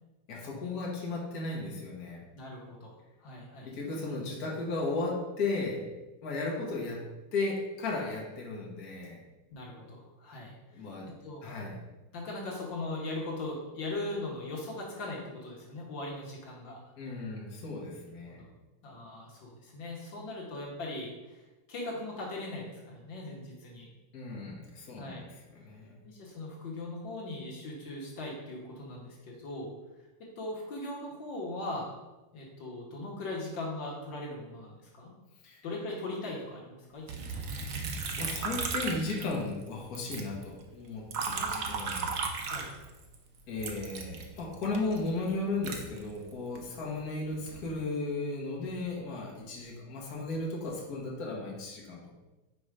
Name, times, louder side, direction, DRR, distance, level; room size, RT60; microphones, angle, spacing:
voice 1, 0.3-2.2 3.6-5.8 6.2-7.0 7.3-9.2 10.7-11.1 11.4-11.8 17.0-18.4 24.1-25.9 35.4-35.6 38.2-42.1 43.5-52.1, left 3 dB, 55° left, -3 dB, 1.6 m, -35 dB
voice 2, 2.3-3.7 9.5-10.9 11.2-11.5 12.1-16.8 18.3-18.5 18.8-21.4 21.7-23.9 25.0-25.2 26.0-29.7 30.4-32.0 32.3-35.1 35.6-37.3 41.3-41.6 42.5-42.7, left 2 dB, 70° left, -3 dB, 1.9 m, -39 dB
Liquid, 37.1-39.7 39.9-43.1 43.6-46.6 47.2-47.7, right 5 dB, 60° right, 0.9 m, -36 dB
5.5 x 4.6 x 5.0 m, 1.1 s
omnidirectional pair, 2.1 m